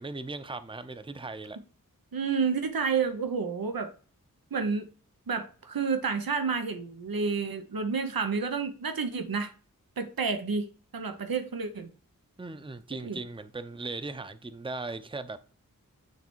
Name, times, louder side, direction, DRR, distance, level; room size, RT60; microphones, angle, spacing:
voice 1, 0.0-1.6 12.4-15.4, right 3 dB, 15° right, 0.6 m, -38 dB
voice 2, 2.1-3.9 4.5-4.9 5.3-9.5 10.0-10.7 10.9-11.9 13.0-13.2, right 5 dB, 90° right, 0.8 m, -30 dB
9.6 x 3.2 x 4.5 m
wide cardioid pair, 45°, 34 cm